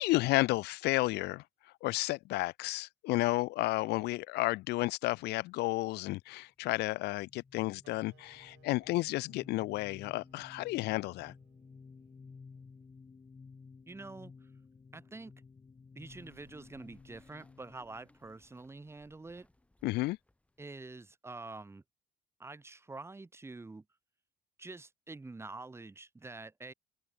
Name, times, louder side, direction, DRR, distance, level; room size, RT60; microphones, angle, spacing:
voice 1, 0.0-11.3 19.8-20.2, left 20 dB, 75° left, 0.4 m, -32 dB
sound 1, 7.1-19.3, left 4 dB, 25° left, 1.4 m, -55 dB
Wind instrument woodwind instrument, 7.8-12.9, right 17 dB, 80° right, 4.2 m, -68 dB
voice 2, 13.9-14.3 14.9-15.3 15.9-19.5 20.6-21.8 22.4-23.8 24.6-26.7, right 3 dB, 15° right, 1.4 m, -47 dB
sound 2, 16.0-21.1, left 1 dB, 5° left, 6.6 m, -68 dB
open air
cardioid pair, 110°, 17 cm